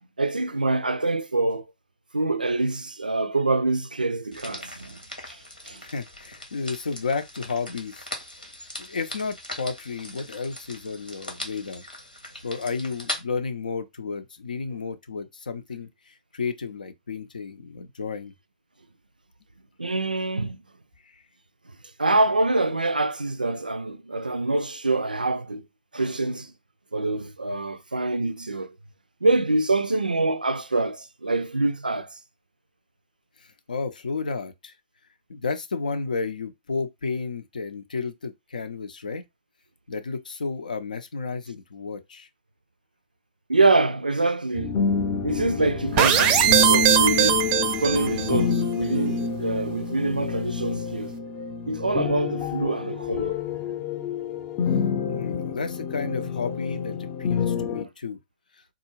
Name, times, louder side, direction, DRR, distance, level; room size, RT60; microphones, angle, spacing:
voice 1, 0.2-1.6 2.1-5.0 5.3-5.8 19.8-20.6 22.0-25.7 25.9-26.5 26.9-28.7 29.2-32.2 43.5-44.8 45.2-47.5 47.8-51.1 51.7-53.4, right 2 dB, 85° right, 0.4 m, -25 dB
sound 1, 4.3-13.2, left 1 dB, 90° left, 1.1 m, -39 dB
voice 2, 5.8-8.1 8.8-11.9 12.4-18.3 21.1-21.2 33.4-34.7 35.3-39.2 39.9-42.3 55.0-58.2, left 4 dB, 70° left, 0.6 m, -32 dB
sound 2, 44.5-57.8, left 6 dB, 30° left, 0.6 m, -28 dB
sound 3, 46.0-48.4, right 9 dB, 30° right, 0.5 m, -20 dB
3.6 x 2.4 x 3.0 m
figure-of-eight pair, 110°, 5 cm